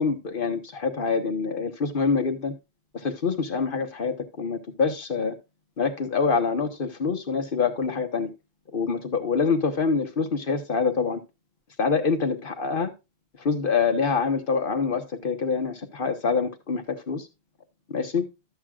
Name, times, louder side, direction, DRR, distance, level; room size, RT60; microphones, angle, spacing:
voice 1, 0.0-2.5 2.9-5.4 5.8-8.3 8.7-11.2 11.8-12.9 13.4-17.3 17.9-18.2, left 5 dB, 55° left, 1.3 m, -25 dB
12.5 x 7.5 x 2.4 m
omnidirectional pair, 1.1 m